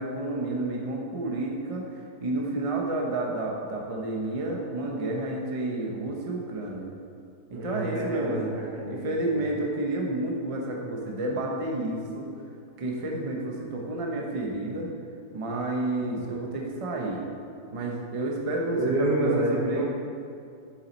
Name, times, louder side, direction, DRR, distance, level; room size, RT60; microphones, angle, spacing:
voice 1, 0.0-1.8 2.2-6.9 7.5-8.5 8.9-12.3 12.8-14.9 15.3-17.2 17.7-19.8, right 2 dB, 25° right, -1 dB, 0.8 m, -30 dB
voice 2, 7.5-9.4 18.7-19.8, right 1 dB, 75° right, -4 dB, 2.1 m, -28 dB
7.6 x 7.5 x 4.1 m, 2.5 s
omnidirectional pair, 1.8 m